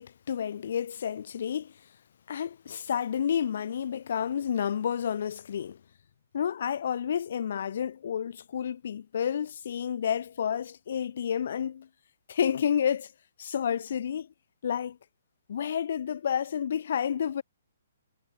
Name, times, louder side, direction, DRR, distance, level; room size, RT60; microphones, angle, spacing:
voice 1, 0.0-1.7 2.3-5.8 6.3-11.9 12.3-13.1 13.4-14.3 14.6-15.0 15.5-17.4, left 8 dB, 55° left, 2.1 m, -30 dB
hypercardioid pair, 165°, 0 cm